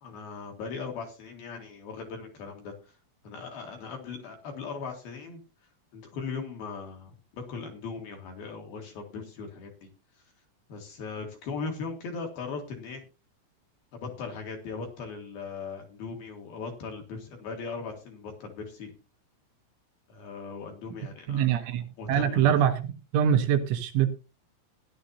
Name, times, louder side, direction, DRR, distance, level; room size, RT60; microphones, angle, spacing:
voice 1, 0.0-2.9 3.2-5.4 5.9-9.7 10.7-13.0 13.9-18.9 20.1-21.7 22.0-22.5, left 4 dB, 60° left, 3 dB, 2.9 m, -39 dB
voice 2, 21.3-24.1, right 9 dB, 75° right, 7 dB, 3.3 m, -24 dB
17.0 x 11.0 x 2.7 m, 0.31 s
omnidirectional pair, 5.9 m